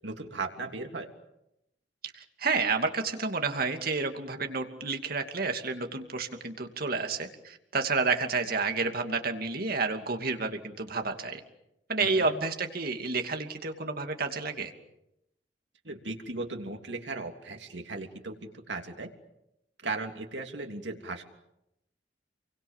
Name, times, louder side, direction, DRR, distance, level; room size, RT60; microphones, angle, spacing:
voice 1, 0.0-1.1 12.0-12.3 15.8-19.1 19.8-21.2, right 3 dB, 75° right, 4 dB, 3.1 m, -37 dB
voice 2, 2.1-11.4 11.9-14.7, right 4 dB, 55° right, 5 dB, 2.6 m, -30 dB
29.5 x 23.5 x 7.4 m, 0.86 s
head